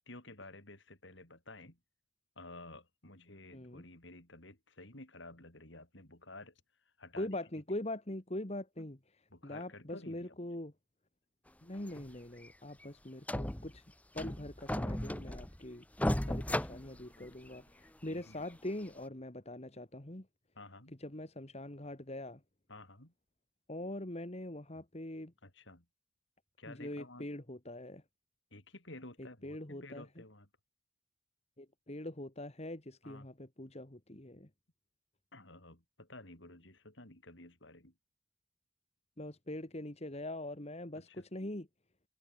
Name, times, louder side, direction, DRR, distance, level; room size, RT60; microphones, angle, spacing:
voice 1, 0.0-1.8 2.4-6.6 7.0-7.3 8.8-8.9 9.3-10.4 18.1-18.5 20.6-21.0 22.7-23.1 25.4-25.9 26.6-27.3 28.5-30.5 33.0-33.3 35.3-37.9 40.9-41.3, left 2 dB, 60° left, 5.3 m, -52 dB
voice 2, 3.5-3.8 7.2-9.0 9.4-10.7 11.6-13.8 14.1-15.8 16.3-20.3 21.0-22.4 23.7-25.3 26.7-28.0 29.4-30.0 31.6-34.5 39.2-41.7, left 1 dB, 30° left, 1.9 m, -43 dB
sound 1, 11.9-12.1 12.4-12.5 12.8-12.9 13.3-13.8 14.2-15.6 16.0-17.6 18.1-18.2 18.8-18.9, left 1 dB, 5° left, 0.9 m, -35 dB
head